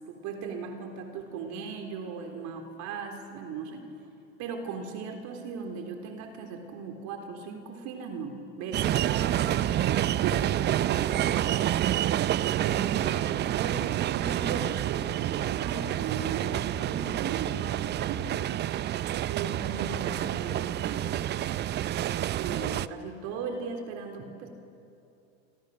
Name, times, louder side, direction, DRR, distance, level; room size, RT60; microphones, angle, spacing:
voice 1, 0.1-3.9 4.4-10.5 10.9-11.3 12.6-18.3 19.3-21.1 22.0-24.5, right 5 dB, 50° right, 4 dB, 3.6 m, -37 dB
sound 1, 8.7-22.9, right 12 dB, 30° right, 0.7 m, -28 dB
28.0 x 25.0 x 6.6 m, 2.7 s
hypercardioid pair, 95°, 37 cm